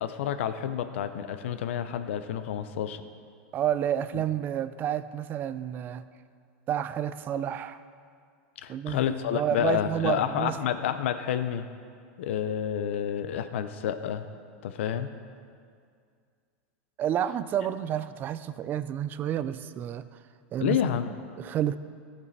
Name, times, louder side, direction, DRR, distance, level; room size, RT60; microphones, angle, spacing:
voice 1, 0.0-3.0 4.1-4.2 8.6-11.7 12.2-14.3 14.6-15.1 20.6-21.1, left 9 dB, 85° left, 10 dB, 0.5 m, -29 dB
voice 2, 3.5-6.0 6.7-7.8 8.7-9.1 9.3-10.6 17.0-20.0 20.5-20.9 21.4-21.8, right 10 dB, 30° right, 13 dB, 0.3 m, -30 dB
13.5 x 5.3 x 4.1 m, 2.2 s
supercardioid pair, 135°, 7 cm